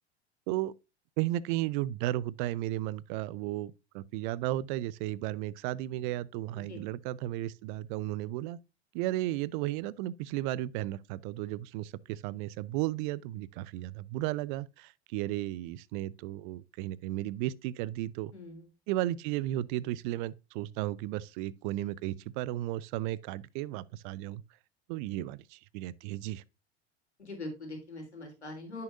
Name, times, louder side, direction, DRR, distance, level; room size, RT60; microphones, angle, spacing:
voice 1, 1.2-8.6 8.9-18.3 18.9-24.4 24.9-26.4, right 15 dB, 50° right, 0.6 m, -34 dB
voice 2, 18.3-18.7 27.2-28.8, left 2 dB, 90° left, 3.4 m, -42 dB
10.5 x 6.7 x 2.5 m
figure-of-eight pair, 85°, 33 cm